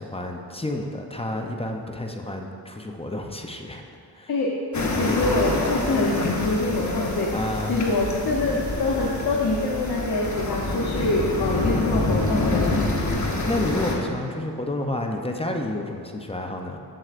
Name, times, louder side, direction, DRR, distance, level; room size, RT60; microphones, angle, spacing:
voice 1, 0.0-3.8 4.1-4.3 7.3-7.8 13.5-16.8, left 1 dB, 15° left, 2 dB, 0.5 m, -30 dB
sound 1, 4.7-14.0, left 2 dB, 45° left, 1.1 m, -26 dB
voice 2, 4.9-7.3 7.7-12.8, left 2 dB, 70° left, -3 dB, 0.9 m, -25 dB
7.8 x 7.6 x 2.5 m, 2.5 s
wide cardioid pair, 65°, 41 cm